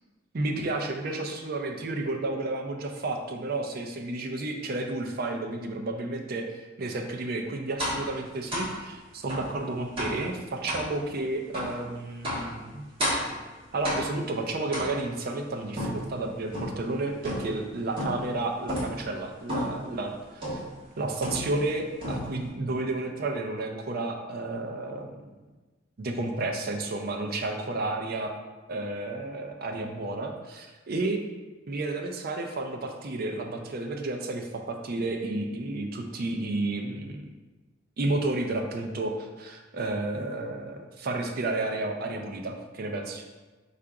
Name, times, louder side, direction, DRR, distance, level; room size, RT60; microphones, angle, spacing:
voice 1, 0.3-12.8 13.7-20.6 21.0-25.2 26.0-28.3 28.7-31.2 31.7-37.2 38.0-43.2, right 2 dB, 50° right, 4 dB, 0.5 m, -31 dB
sound 1, 7.8-8.1 8.5-8.8 9.3-9.5 10.0-10.2 10.7-10.9 11.5-11.8 12.2-12.5 13.0-13.4 13.8-14.3 14.7-15.2 15.8-16.8 17.2-17.6 18.0-18.3 18.7-19.0 19.5-19.8 20.4-20.7 21.2-21.7 22.0-22.5, equal, 30° right, 1.3 m, -32 dB
3.8 x 2.5 x 4.5 m, 1.2 s
head